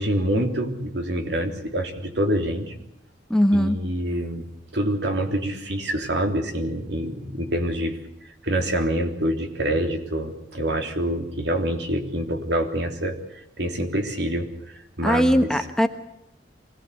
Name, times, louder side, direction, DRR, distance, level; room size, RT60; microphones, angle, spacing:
voice 1, 0.0-2.7 3.5-4.5 4.7-8.0 8.4-15.6, right 1 dB, 70° right, 4 dB, 3.5 m, -26 dB
voice 2, 3.3-3.8 15.0-15.9, equal, 5° left, 7 dB, 1.2 m, -19 dB
24.5 x 18.0 x 8.2 m, 0.80 s
head